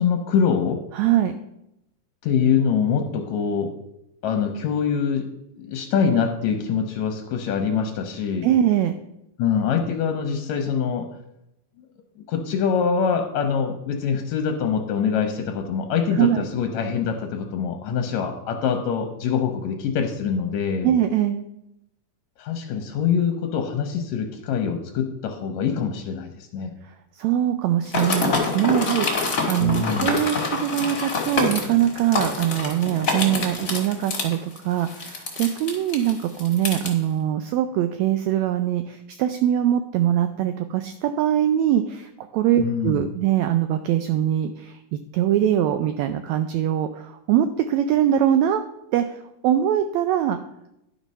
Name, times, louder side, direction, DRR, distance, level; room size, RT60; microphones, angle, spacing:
voice 1, 0.0-0.8 2.2-3.7 4.2-5.3 5.6-8.5 9.4-11.1 12.3-20.9 22.4-26.7 29.6-30.1 42.6-43.0, left 6 dB, 75° left, 5 dB, 1.9 m, -24 dB
voice 2, 0.9-1.4 8.4-8.9 16.2-16.4 20.8-21.4 26.8-44.8 45.1-48.6 48.9-50.4, right 11 dB, 85° right, 9 dB, 1.6 m, -22 dB
sound 1, 27.9-36.9, left 3 dB, 35° left, 1.5 m, -26 dB
11.0 x 5.2 x 5.4 m, 0.85 s
omnidirectional pair, 3.7 m